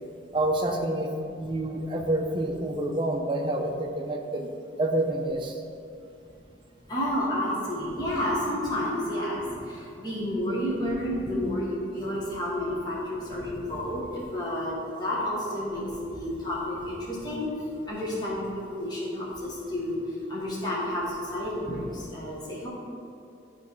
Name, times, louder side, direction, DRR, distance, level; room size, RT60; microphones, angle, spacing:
voice 1, 0.3-1.1 1.4-4.5 4.8-5.6, right 1 dB, 25° right, 2 dB, 0.6 m, -28 dB
voice 2, 6.9-17.5 17.9-22.7, left 1 dB, 20° left, -7 dB, 1.1 m, -30 dB
9.0 x 3.1 x 5.3 m, 2.6 s
head